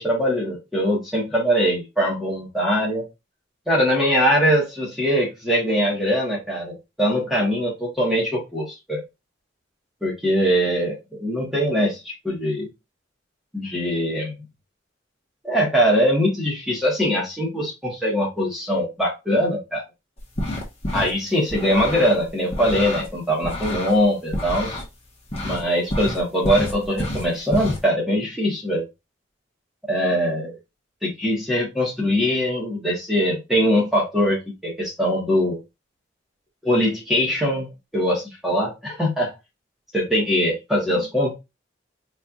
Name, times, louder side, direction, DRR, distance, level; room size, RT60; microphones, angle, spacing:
voice 1, 0.0-3.1 3.7-9.0 10.0-12.7 13.5-14.4 15.4-19.8 20.9-24.8 25.4-28.8 29.9-30.6 31.0-35.6 36.6-39.3 39.9-41.3, equal, ahead, 1.4 m, -22 dB
sound 1, 20.2-21.1 21.5-23.1 23.4-24.9 25.3-25.6 25.9-27.8, left 1 dB, 30° left, 1.1 m, -28 dB
4.2 x 3.3 x 2.4 m
head